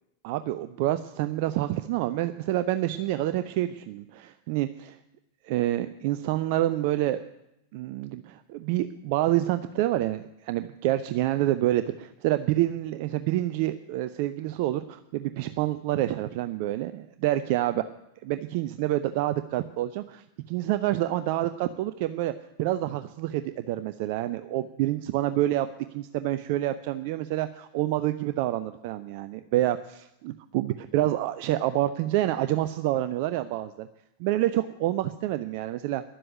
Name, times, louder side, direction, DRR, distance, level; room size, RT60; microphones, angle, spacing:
voice 1, 0.2-5.0 5.4-7.2 7.7-17.8 18.2-22.3 22.6-25.7 25.9-33.9 34.2-36.0, right 14 dB, 45° right, 11 dB, 0.5 m, -27 dB
11.5 x 7.7 x 9.0 m, 0.85 s
figure-of-eight pair, 90°, 0 cm